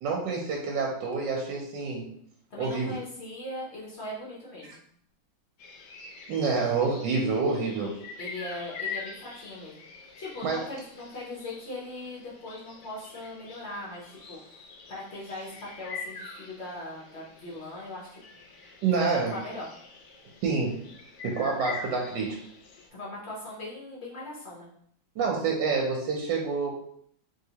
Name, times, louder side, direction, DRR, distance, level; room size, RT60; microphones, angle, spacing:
voice 1, 0.0-2.1 2.6-2.9 6.3-8.0 10.4-10.7 18.8-19.4 20.4-20.8 21.2-22.4 25.2-26.7, right 4 dB, 70° right, -1 dB, 1.2 m, -27 dB
voice 2, 2.5-4.8 8.2-9.8 10.2-14.6 14.9-18.2 19.3-19.7 22.9-24.7, left 2 dB, 55° left, -5 dB, 0.7 m, -40 dB
sound 1, 5.6-22.9, left 4 dB, 70° left, 1.0 m, -44 dB
3.2 x 2.8 x 2.8 m, 0.65 s
omnidirectional pair, 2.2 m